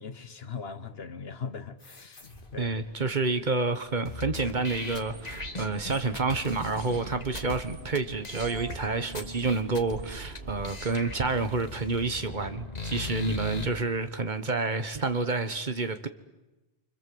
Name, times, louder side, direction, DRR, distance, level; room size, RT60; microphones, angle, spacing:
voice 1, 0.0-2.2 2.5-2.8, left 5 dB, 70° left, 1.5 m, -39 dB
sound 1, 1.8-4.8, left 2 dB, 55° left, 2.4 m, -54 dB
voice 2, 2.6-16.1, right 3 dB, 45° right, 1.5 m, -29 dB
sound 2, 4.1-7.6 8.0-8.1 8.2-8.8 9.2-10.0 10.4-10.5 10.6-13.7, left 3 dB, 40° left, 1.8 m, -39 dB
sound 3, 4.4-11.5, right 3 dB, 70° right, 2.0 m, -43 dB
29.5 x 25.0 x 7.8 m
omnidirectional pair, 1.1 m